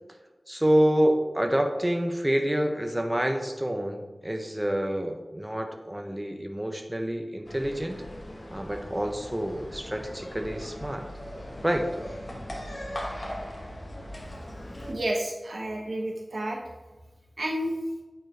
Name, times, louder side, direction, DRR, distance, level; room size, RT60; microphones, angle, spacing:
voice 1, 0.5-8.0 8.5-11.0 11.6-11.9, equal, 15° right, 4 dB, 0.6 m, -27 dB
sound 1, 7.4-14.9, equal, 45° left, 1.2 m, -39 dB
voice 2, 14.9-16.6 17.4-17.8, right 1 dB, 85° right, -1 dB, 1.2 m, -30 dB
8.9 x 4.4 x 3.2 m, 1.2 s
wide cardioid pair, 60°, 0 cm